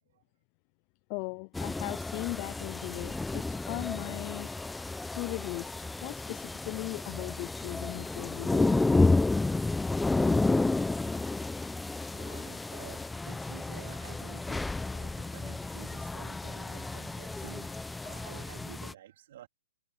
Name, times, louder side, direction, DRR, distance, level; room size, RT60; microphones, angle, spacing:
voice 1, 1.1-4.5 5.1-5.7 6.0-8.8, left 29 dB, 35° left, 0.5 m, -38 dB
sound 1, 1.5-18.9, left 3 dB, 5° left, 0.8 m, -31 dB
voice 2, 12.1-19.5, right 12 dB, 55° right, 4.0 m, -51 dB
hypercardioid pair, 145°, 0 cm